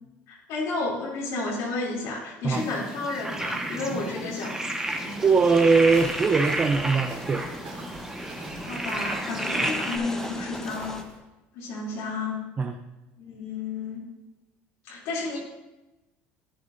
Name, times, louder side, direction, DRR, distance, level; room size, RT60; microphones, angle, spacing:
voice 1, 0.3-4.6 5.0-5.1 8.6-11.0 11.5-12.4 13.2-14.0 14.9-15.4, left 3 dB, 75° left, -5 dB, 3.0 m, -31 dB
sound 1, 2.5-10.0, right 1 dB, 10° right, 1.4 m, -32 dB
sound 2, 4.8-11.0, left 1 dB, 10° left, 1.0 m, -39 dB
voice 2, 5.2-7.4 9.6-9.7 12.6-12.8, right 4 dB, 30° right, 5 dB, 0.6 m, -21 dB
Walk footsteps, 5.8-11.2, right 3 dB, 75° right, 3.2 m, -45 dB
11.5 x 9.5 x 2.7 m, 1.0 s
supercardioid pair, 90°, 5 cm